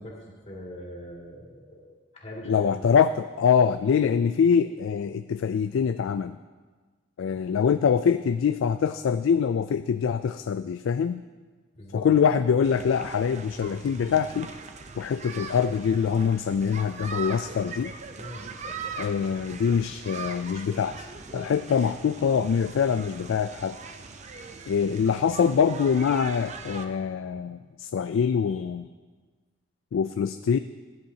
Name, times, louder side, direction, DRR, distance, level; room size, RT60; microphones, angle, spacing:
voice 1, 0.0-2.9 11.7-12.1 18.2-18.5, equal, 30° left, -4 dB, 2.4 m, -42 dB
voice 2, 2.5-6.4 7.2-11.2 11.9-14.5 15.0-17.9 19.0-23.8 24.7-28.9 29.9-30.6, left 7 dB, 70° left, 10 dB, 0.3 m, -24 dB
sound 1, 12.6-26.9, right 4 dB, 35° right, 0.5 m, -40 dB
16.0 x 10.5 x 2.8 m, 1.4 s
head